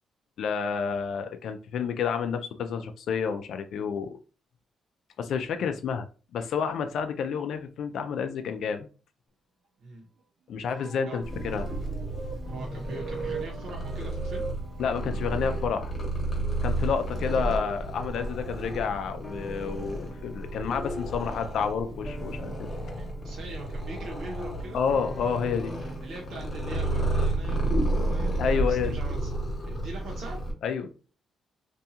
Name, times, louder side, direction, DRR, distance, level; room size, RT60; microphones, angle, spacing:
voice 1, 0.4-4.2 5.2-6.1 6.3-8.9 10.5-11.7 14.8-15.9 16.6-22.7 24.7-25.8 28.4-29.0 30.6-30.9, left 6 dB, 75° left, 7 dB, 0.3 m, -30 dB
sound 1, 10.7-22.6 23.7-25.9, right 2 dB, 50° right, 0.6 m, -43 dB
Purr, 11.2-30.5, right 1 dB, 35° left, 0.8 m, -32 dB
voice 2, 12.5-14.4 21.3-21.4 22.9-24.8 25.8-29.3 29.6-30.4, right 3 dB, 70° right, -2 dB, 0.9 m, -42 dB
sound 2, 19.2-29.8 30.1-30.2, left 1 dB, 5° left, 0.7 m, -49 dB
2.6 x 2.3 x 2.7 m, 0.35 s
cardioid pair, 115°, 0 cm